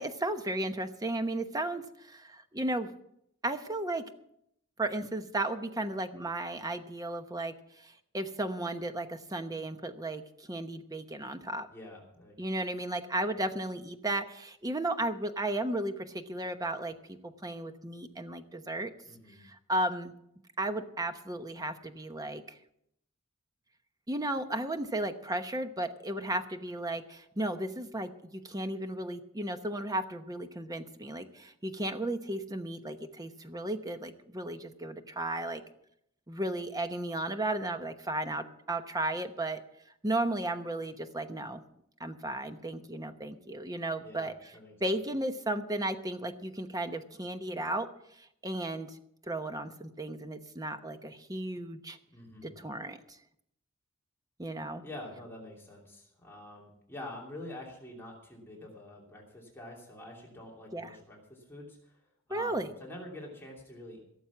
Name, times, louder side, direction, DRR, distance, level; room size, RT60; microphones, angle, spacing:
voice 1, 0.0-2.9 3.4-4.0 4.8-11.7 12.4-18.9 19.4-20.1 20.6-22.6 24.1-35.6 36.3-39.6 40.0-41.6 42.0-44.3 44.8-47.9 48.2-49.0 49.2-52.0 52.4-53.2 54.4-54.8 60.7-60.9 62.3-62.7, right 1 dB, 15° right, 8 dB, 1.0 m, -34 dB
voice 2, 11.7-12.4 19.0-19.4 44.0-44.8 52.1-52.6 54.8-62.0 62.3-64.0, left 1 dB, 10° left, -3 dB, 2.9 m, -46 dB
17.0 x 7.3 x 7.2 m, 0.75 s
head